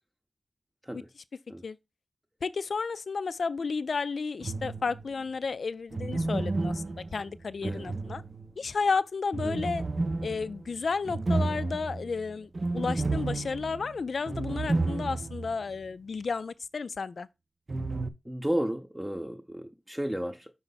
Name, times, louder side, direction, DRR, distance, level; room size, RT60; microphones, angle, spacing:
voice 1, 2.4-6.8 7.1-8.2 8.6-9.8 10.2-17.3, left 4 dB, 80° left, 0.3 m, -32 dB
sound 1, 4.4-5.1 5.9-8.7 9.3-15.5 15.8-15.9 17.7-18.1, right 3 dB, 50° right, 0.6 m, -32 dB
voice 2, 18.3-20.5, equal, 10° right, 0.7 m, -33 dB
5.5 x 4.5 x 4.0 m
wide cardioid pair, 65°, 0 cm